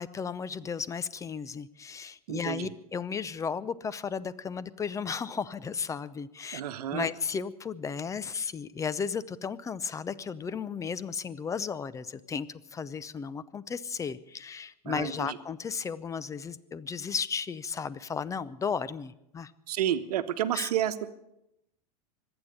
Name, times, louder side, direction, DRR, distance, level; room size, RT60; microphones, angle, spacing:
voice 1, 0.0-6.6 6.9-19.5 20.5-20.7, left 6 dB, 15° left, 17 dB, 0.6 m, -34 dB
voice 2, 2.3-2.7 6.5-7.1 14.9-15.4 19.7-21.1, right 11 dB, 70° right, 11 dB, 1.1 m, -30 dB
24.5 x 9.0 x 6.6 m, 0.83 s
hypercardioid pair, 110°, 21 cm